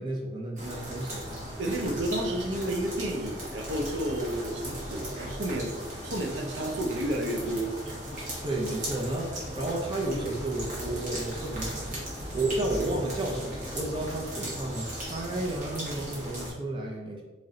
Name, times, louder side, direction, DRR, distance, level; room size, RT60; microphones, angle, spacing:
voice 1, 0.0-1.5 8.4-12.1 12.3-17.2, right 2 dB, 30° right, -1 dB, 0.5 m, -32 dB
sound 1, 0.6-16.5, equal, 45° right, 1.2 m, -38 dB
voice 2, 1.6-5.7 6.0-7.7, right 1 dB, 85° right, 2 dB, 0.6 m, -31 dB
sound 2, 9.0-16.6, left 1 dB, 20° left, 0.9 m, -45 dB
3.1 x 2.8 x 3.7 m, 1.2 s
head